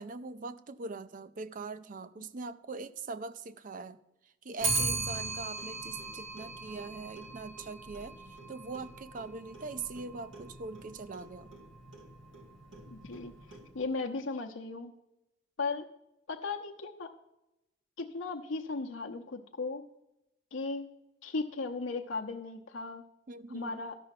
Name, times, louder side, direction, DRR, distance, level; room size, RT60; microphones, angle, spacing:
voice 1, 0.0-4.0 4.2-11.5 23.3-23.9, right 4 dB, 45° right, 14 dB, 0.5 m, -42 dB
Clock, 4.6-14.0, right 3 dB, 80° right, 1.8 m, -39 dB
voice 2, 12.9-14.9 15.6-15.9 16.3-17.1 18.0-19.8 20.5-20.9 21.2-23.0 23.5-24.0, left 3 dB, 85° left, 2 dB, 0.7 m, -36 dB
13.0 x 5.6 x 5.9 m, 0.92 s
head